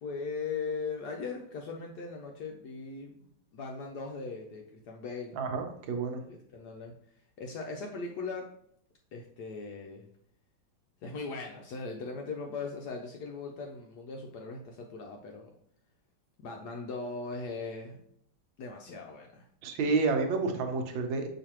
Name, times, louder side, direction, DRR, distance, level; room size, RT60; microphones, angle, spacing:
voice 1, 0.0-5.5 6.3-6.9 7.4-8.5 9.1-10.1 11.0-15.5 16.4-18.0 18.6-19.5, left 4 dB, 75° left, 1 dB, 1.0 m, -39 dB
voice 2, 5.3-6.2 19.6-21.3, right 4 dB, 80° right, 5 dB, 1.4 m, -29 dB
5.9 x 3.1 x 2.9 m, 0.70 s
omnidirectional pair, 2.2 m